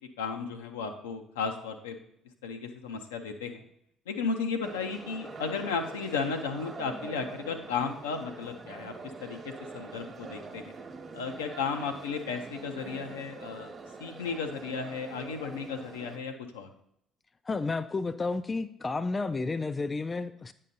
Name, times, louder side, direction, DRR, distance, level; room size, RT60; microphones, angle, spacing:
voice 1, 0.2-2.0 2.4-3.6 4.1-8.9 9.2-10.7 11.1-13.7 14.0-16.7, left 5 dB, 80° left, 5 dB, 0.6 m, -34 dB
sound 1, 4.6-16.2, right 4 dB, 40° right, 1.1 m, -44 dB
voice 2, 17.5-20.5, left 3 dB, 30° left, 11 dB, 0.3 m, -31 dB
8.9 x 5.5 x 2.7 m, 0.73 s
figure-of-eight pair, 50°, 0 cm